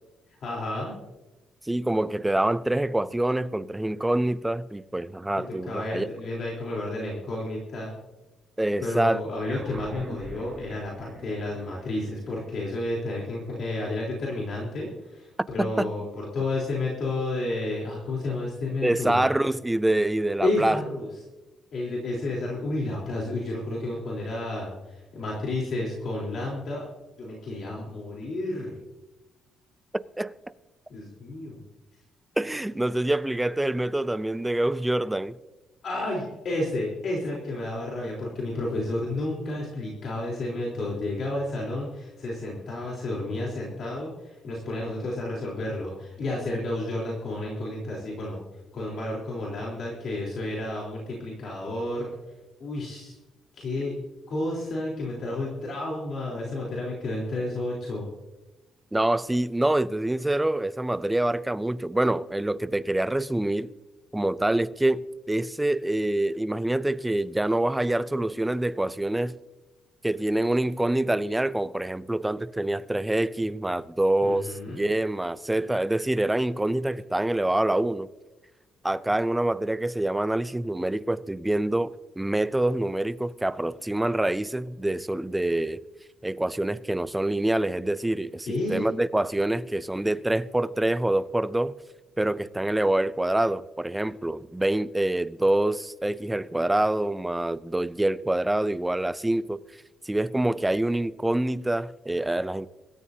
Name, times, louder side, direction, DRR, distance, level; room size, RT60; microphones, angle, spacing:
voice 1, 0.4-0.9 5.4-7.9 8.8-19.2 20.4-21.1 21.7-26.9 27.2-28.8 30.9-31.6 35.8-48.4 48.7-52.1 52.6-53.2 53.5-53.9 54.3-58.1 74.2-74.9 88.5-88.9, left 2 dB, 45° left, 3.5 m, -31 dB
voice 2, 1.6-6.1 8.6-9.2 15.6-15.9 18.8-20.8 29.9-30.4 32.4-35.4 58.9-63.7 64.1-69.3 70.0-78.1 78.8-85.8 86.2-91.7 92.2-99.6 100.0-102.7, right 1 dB, 5° right, 0.4 m, -26 dB
sound 1, 9.5-14.2, right 4 dB, 25° right, 1.1 m, -45 dB
24.5 x 13.5 x 2.8 m
cardioid pair, 175°, 0 cm